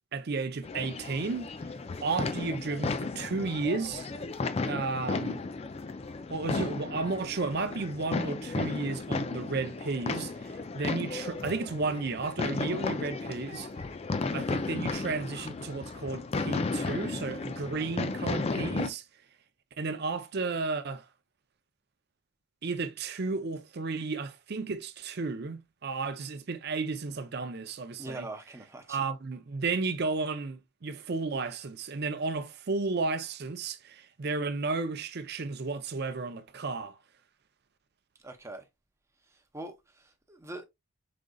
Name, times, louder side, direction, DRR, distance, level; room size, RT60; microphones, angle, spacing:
voice 1, 0.1-1.5 2.0-4.1 4.6-5.4 6.3-10.3 10.7-13.7 14.3-19.0 19.8-21.1 22.6-28.3 28.9-37.0, right 4 dB, 50° right, 0.5 m, -33 dB
sound 1, 0.6-18.9, left 3 dB, 30° left, 0.3 m, -34 dB
voice 2, 28.0-29.0 38.2-38.6 39.5-40.6, right 2 dB, 15° right, 0.7 m, -42 dB
5.1 x 3.7 x 2.2 m
head